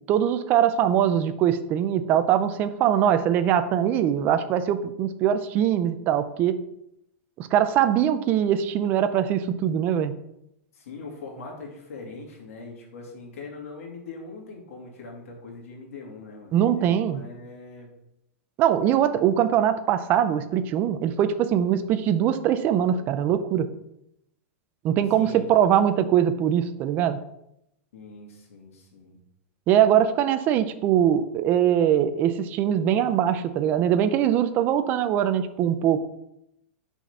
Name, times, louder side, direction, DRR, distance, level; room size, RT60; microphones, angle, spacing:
voice 1, 0.1-6.6 7.4-10.1 16.5-17.2 18.6-23.7 24.8-27.2 29.7-36.0, right 10 dB, 25° right, 11 dB, 0.4 m, -22 dB
voice 2, 10.7-17.9 25.2-25.5 27.9-29.2, left 3 dB, 90° left, 0 dB, 2.3 m, -41 dB
5.9 x 4.0 x 5.5 m, 0.81 s
supercardioid pair, 170°, 8 cm